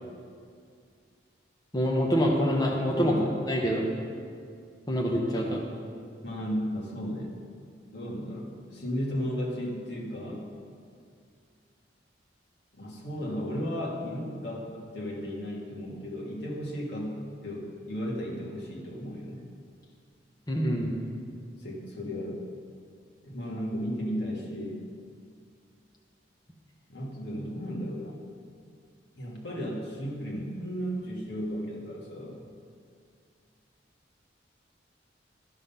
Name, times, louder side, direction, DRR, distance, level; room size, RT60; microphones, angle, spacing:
voice 1, 1.7-3.1 3.5-3.8 4.9-5.6 20.5-20.9, equal, 20° left, -1 dB, 1.0 m, -25 dB
voice 2, 6.2-7.3 7.9-10.5 12.7-19.4 21.6-22.4 23.2-24.8 26.9-28.2 29.1-32.4, equal, 65° left, -3 dB, 1.8 m, -34 dB
13.0 x 5.6 x 5.6 m, 2.2 s
head